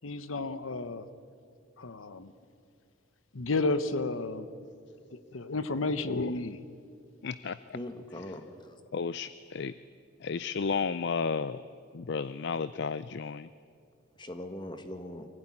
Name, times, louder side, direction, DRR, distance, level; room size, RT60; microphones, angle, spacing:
voice 1, 0.0-1.1 1.8-2.3 3.3-4.5 5.1-6.6, left 3 dB, 80° left, 12 dB, 1.0 m, -32 dB
voice 2, 7.2-7.6 8.9-9.7 10.2-11.6 11.9-13.5, left 5 dB, 55° left, 15 dB, 0.5 m, -32 dB
voice 3, 7.7-8.7 14.2-15.3, left 1 dB, 25° left, 8 dB, 1.6 m, -41 dB
24.5 x 16.0 x 10.0 m, 2.4 s
head